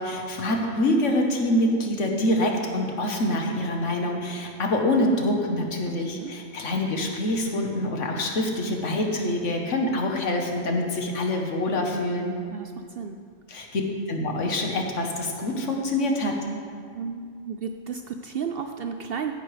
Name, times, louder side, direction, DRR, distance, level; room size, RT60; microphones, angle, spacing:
voice 1, 0.0-12.4 13.5-13.8 14.1-16.4, left 1 dB, 70° left, 2 dB, 1.5 m, -25 dB
voice 2, 6.0-6.3 12.5-13.2 16.9-19.3, right 6 dB, 65° right, 6 dB, 0.6 m, -33 dB
15.5 x 9.4 x 3.3 m, 2.1 s
omnidirectional pair, 1.3 m